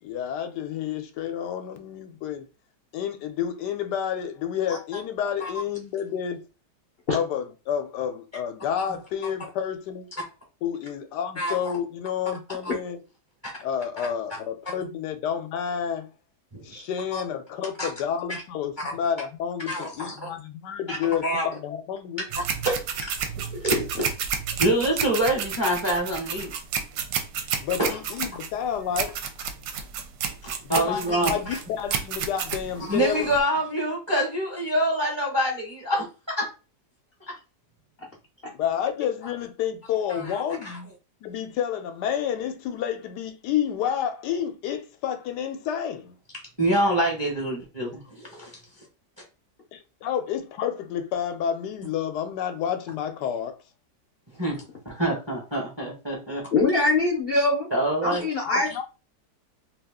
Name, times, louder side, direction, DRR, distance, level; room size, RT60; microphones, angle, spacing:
voice 1, 0.0-2.5 2.9-6.5 7.1-10.1 10.6-13.0 13.6-16.1 16.6-22.3 27.6-29.2 30.6-33.3 38.5-40.9 41.2-46.1 49.7-53.6 58.4-58.8, left 8 dB, 80° left, 1.1 m, -30 dB
voice 2, 16.5-16.8 17.1-17.2 17.8-17.9 18.3-18.4 18.8-18.9 19.7-20.3 20.9-21.0 21.2-21.5 22.6-23.2 23.6-24.0 24.6-26.5 27.8-28.0 30.4-31.6 32.9-36.5 37.3-37.4 40.1-40.2 40.6-40.8 46.6-48.5 54.4-56.4 56.7-56.8 57.7-58.2, right 1 dB, 20° right, 0.7 m, -26 dB
sound 1, 22.3-33.4, right 7 dB, 75° right, 1.1 m, -31 dB
voice 3, 56.5-57.7 58.0-58.8, left 2 dB, 50° left, 0.7 m, -22 dB
2.8 x 2.4 x 3.5 m
omnidirectional pair, 1.8 m